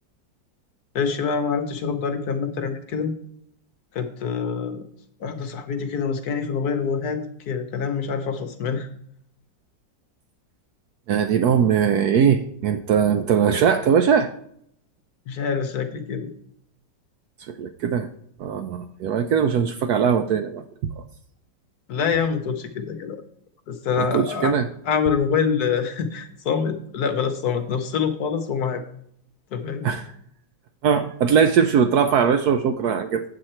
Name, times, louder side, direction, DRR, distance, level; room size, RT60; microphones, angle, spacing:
voice 1, 0.9-3.1 3.9-4.9 5.2-8.9 15.3-16.3 21.9-23.2 23.7-24.5 24.8-28.8 29.5-29.9, left 6 dB, 65° left, 7 dB, 1.2 m, -25 dB
voice 2, 11.1-14.3 17.5-18.1 18.4-21.0 24.0-24.7 29.8-30.1 30.8-33.2, right 7 dB, 70° right, 9 dB, 0.9 m, -20 dB
8.1 x 7.6 x 4.3 m, 0.69 s
omnidirectional pair, 2.0 m